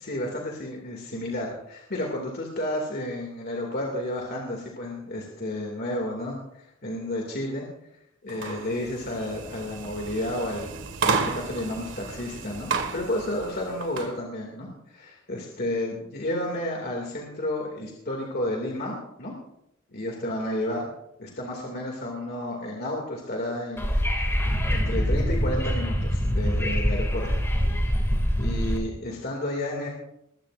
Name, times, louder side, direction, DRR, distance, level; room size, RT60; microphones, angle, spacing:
voice 1, 0.0-7.7 8.2-10.7 11.0-19.3 19.9-20.8 21.2-27.4 28.0-28.1 28.4-29.9, left 1 dB, 50° left, 0 dB, 2.4 m, -31 dB
sound 1, 8.3-14.1, right 4 dB, 65° right, 1.7 m, -32 dB
Wind / Subway metro underground, 23.8-28.8, equal, 15° left, 2.4 m, -24 dB
21.0 x 15.0 x 2.6 m, 0.80 s
head